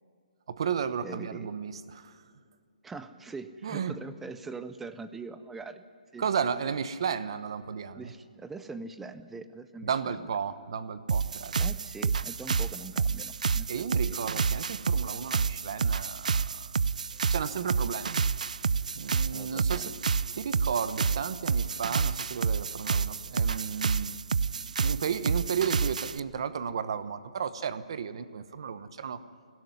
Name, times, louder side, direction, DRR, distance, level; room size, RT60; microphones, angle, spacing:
voice 1, 0.5-2.2 3.6-4.0 6.2-8.1 9.8-11.7 13.7-16.8 17.2-18.2 18.9-19.9 20.3-24.2 24.5-29.2, right 7 dB, 40° right, 13 dB, 1.0 m, -33 dB
voice 2, 1.0-1.5 2.8-5.8 6.1-6.5 8.0-10.2 11.6-14.2 19.3-19.9, right 4 dB, 5° right, 12 dB, 0.4 m, -43 dB
sound 1, 11.1-26.2, right 5 dB, 65° right, 0.6 m, -29 dB
20.5 x 17.5 x 9.5 m, 2.3 s
hypercardioid pair, 175°, 4 cm